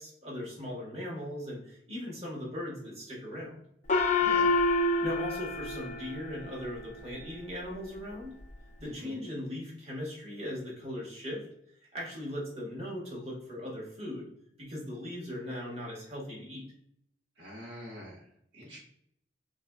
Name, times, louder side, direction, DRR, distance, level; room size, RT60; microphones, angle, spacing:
voice 1, 0.0-3.6 5.0-8.3 8.8-11.4 11.9-14.3 14.6-16.7, left 1 dB, 35° right, -4 dB, 1.6 m, -39 dB
Gong, 3.9-6.8, left 3 dB, 45° left, 0.5 m, -28 dB
voice 2, 4.2-4.5 8.9-9.2 17.4-18.3 18.5-18.8, equal, 75° right, -3 dB, 1.3 m, -45 dB
4.0 x 4.0 x 2.3 m, 0.70 s
head